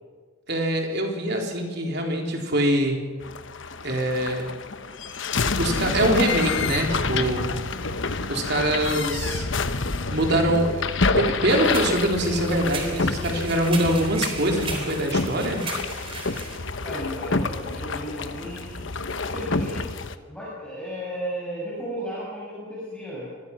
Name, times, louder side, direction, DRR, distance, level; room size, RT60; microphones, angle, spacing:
voice 1, 0.5-3.0 3.8-4.5 5.6-7.5 8.3-9.5 10.1-10.8 11.1-15.6, right 1 dB, 50° right, 1 dB, 3.9 m, -24 dB
sound 1, 3.2-20.1, left 3 dB, 60° left, 1.1 m, -28 dB
sound 2, 11.5-16.6, right 4 dB, 25° right, 3.8 m, -36 dB
voice 2, 16.8-18.8 19.2-19.9 20.3-23.3, equal, 5° left, -7 dB, 6.6 m, -34 dB
26.5 x 21.5 x 6.1 m, 1.5 s
head